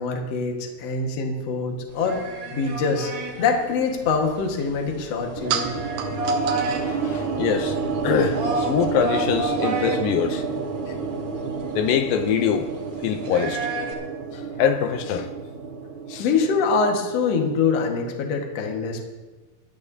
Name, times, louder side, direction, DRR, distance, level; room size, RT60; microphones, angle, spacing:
voice 1, 0.0-2.2 2.5-3.1 3.4-5.7 16.2-19.0, left 4 dB, 55° left, 2.1 m, -24 dB
sound 1, 1.9-13.9, right 2 dB, 40° right, 2.1 m, -32 dB
sound 2, 3.9-9.4, right 8 dB, 75° right, 2.7 m, -36 dB
sound 3, 5.4-17.6, right 5 dB, 60° right, 2.6 m, -30 dB
voice 2, 6.6-7.8 8.0-10.4 11.7-12.7 13.0-13.7 14.3-15.3 16.1-16.3, left 8 dB, 80° left, 2.1 m, -24 dB
23.0 x 12.0 x 2.8 m
omnidirectional pair, 4.6 m